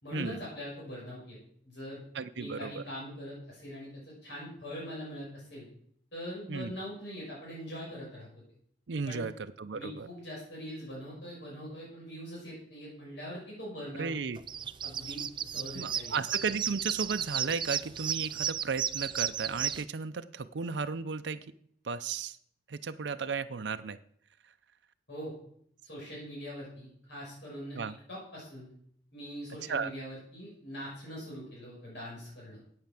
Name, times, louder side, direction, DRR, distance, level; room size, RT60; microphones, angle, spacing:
voice 1, 0.0-1.4 1.6-2.0 2.3-5.7 6.1-8.3 9.0-9.3 9.7-14.2 14.8-16.1 25.1-25.3 25.8-27.8 28.1-28.7 29.1-32.6, equal, 90° left, -5 dB, 6.3 m, -42 dB
voice 2, 2.1-2.8 6.5-6.7 8.9-10.1 14.0-14.4 15.7-21.4 21.8-22.4 22.7-24.0 27.8-28.0 29.7-29.9, right 5 dB, 90° right, 9 dB, 0.6 m, -34 dB
sound 1, 14.4-19.8, right 9 dB, 25° right, 0.4 m, -34 dB
8.9 x 8.8 x 7.5 m, 0.66 s
head